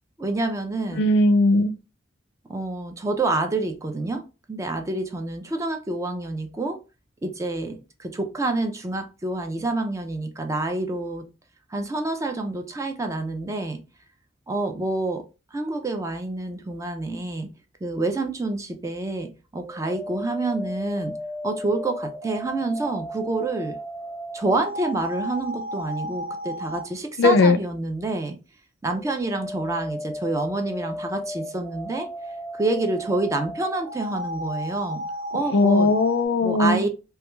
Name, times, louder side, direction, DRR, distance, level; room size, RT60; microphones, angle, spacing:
voice 1, 0.2-1.1 2.5-4.2 4.5-6.8 7.2-11.3 11.7-13.8 14.5-15.2 15.5-17.5 17.8-21.2 21.4-23.8 24.3-28.4 28.8-32.1 32.5-35.0 35.3-35.9 36.4-36.9, right 2 dB, 15° right, 0.3 m, -27 dB
voice 2, 1.0-1.7 27.2-27.6 35.5-36.9, left 2 dB, 65° left, 0.4 m, -18 dB
sound 1, 19.5-26.9 28.9-36.2, equal, 50° right, 1.1 m, -34 dB
2.2 x 2.2 x 3.0 m
head